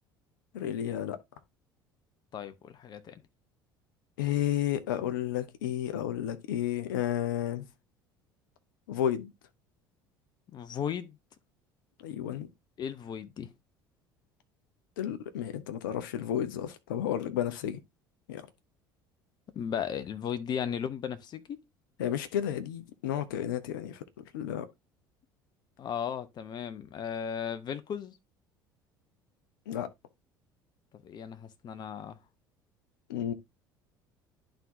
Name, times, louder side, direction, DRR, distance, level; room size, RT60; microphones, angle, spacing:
voice 1, 0.5-1.2 4.2-7.6 8.9-9.3 12.0-12.5 15.0-17.8 18.3-18.5 22.0-24.7 29.7-29.9 33.1-33.3, left 11 dB, 65° left, 0.8 m, -32 dB
voice 2, 2.3-3.2 10.5-11.2 12.8-13.5 19.5-21.6 25.8-28.1 30.9-32.2, left 8 dB, 40° left, 0.9 m, -36 dB
11.5 x 3.8 x 2.7 m
figure-of-eight pair, 60°, 12 cm